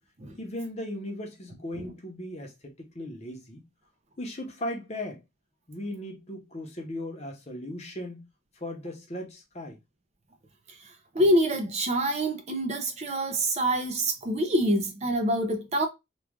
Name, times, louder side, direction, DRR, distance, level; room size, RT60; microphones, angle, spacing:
voice 1, 0.4-3.6 4.2-5.2 5.7-8.2 8.5-9.8, left 1 dB, 35° left, 0.8 m, -37 dB
voice 2, 11.1-15.9, right 1 dB, 35° right, 0.5 m, -26 dB
3.0 x 2.4 x 3.6 m
head